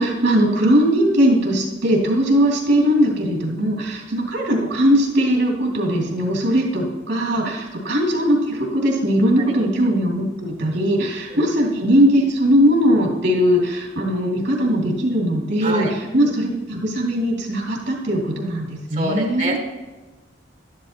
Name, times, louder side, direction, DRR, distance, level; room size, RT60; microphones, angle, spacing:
voice 1, 0.0-19.6, equal, 70° right, -2 dB, 2.6 m, -19 dB
voice 2, 15.6-15.9 18.9-19.6, right 2 dB, 40° right, 2 dB, 1.3 m, -26 dB
12.0 x 11.5 x 2.9 m, 1.2 s
head